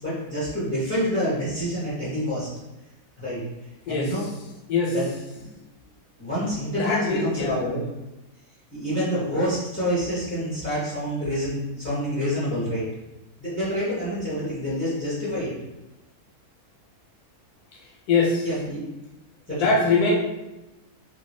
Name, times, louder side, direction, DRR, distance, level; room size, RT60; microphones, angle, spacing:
voice 1, 0.0-2.5 3.2-3.4 3.9-4.2 4.9-5.0 5.3-5.4 6.2-7.8 8.7-12.8 13.4-15.5 18.4-18.8 19.5-19.6, equal, 15° left, -10 dB, 0.5 m, -27 dB
voice 2, 6.8-7.7 18.1-18.5 19.6-20.2, left 3 dB, 80° left, -1 dB, 1.2 m, -22 dB
3.2 x 2.3 x 3.0 m, 0.98 s
omnidirectional pair, 1.6 m